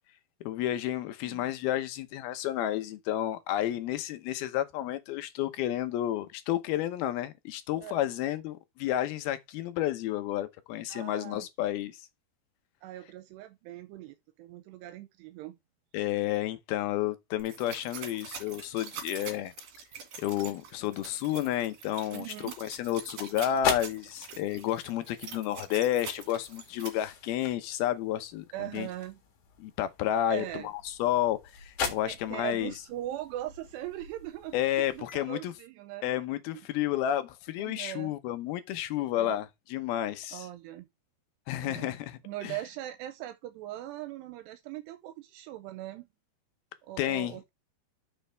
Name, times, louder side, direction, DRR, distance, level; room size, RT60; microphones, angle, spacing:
voice 1, 0.4-11.9 15.9-19.5 20.2-28.9 29.6-32.7 34.5-35.5 36.0-40.5 41.5-42.5 47.0-47.4, left 12 dB, 75° left, 2.6 m, -31 dB
voice 2, 10.9-11.5 12.8-15.6 22.1-22.6 28.5-29.2 30.3-30.7 32.1-36.1 37.6-38.2 39.2-39.4 40.3-40.9 41.6-41.9 42.2-46.1 46.8-47.5, right 14 dB, 85° right, 2.8 m, -40 dB
sound 1, 17.4-26.9, right 6 dB, 60° right, 3.5 m, -44 dB
sound 2, 22.7-35.2, left 6 dB, 55° left, 2.8 m, -40 dB
9.9 x 6.3 x 3.4 m
omnidirectional pair, 4.9 m